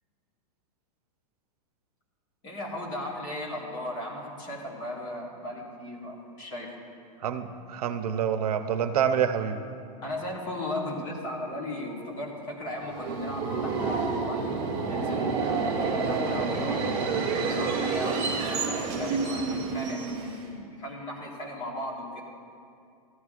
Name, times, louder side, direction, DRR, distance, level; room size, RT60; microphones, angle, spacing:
voice 1, 2.4-6.7 10.0-14.5 14.9-22.2, left 1 dB, 25° left, -3 dB, 1.6 m, -36 dB
voice 2, 7.2-9.6, right 8 dB, 80° right, 9 dB, 0.7 m, -27 dB
Subway metro underground, 12.8-20.5, right 4 dB, 30° right, 1.3 m, -29 dB
14.0 x 12.5 x 2.5 m, 2.4 s
supercardioid pair, 165°, 19 cm